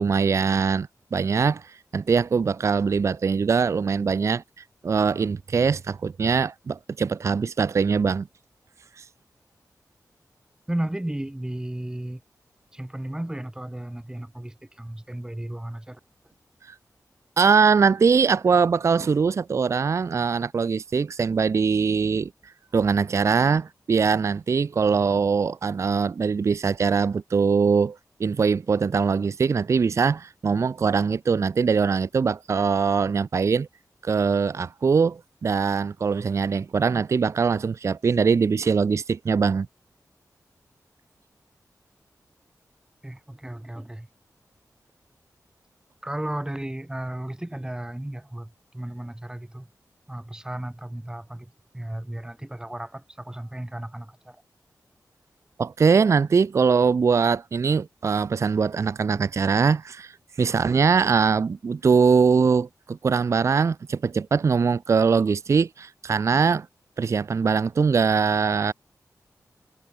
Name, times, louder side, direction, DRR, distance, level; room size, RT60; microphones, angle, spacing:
voice 1, 0.0-4.4 4.8-8.3 9.0-9.1 17.4-22.3 22.7-33.7 34.0-39.7 55.6-60.1 60.4-66.7 67.0-68.7, right 5 dB, 50° right, 0.4 m, -22 dB
voice 2, 10.7-12.2 12.7-16.0 43.0-44.1 46.0-49.7 50.1-54.4, right 1 dB, 10° right, 3.9 m, -34 dB
wide cardioid pair, 115°, 7 cm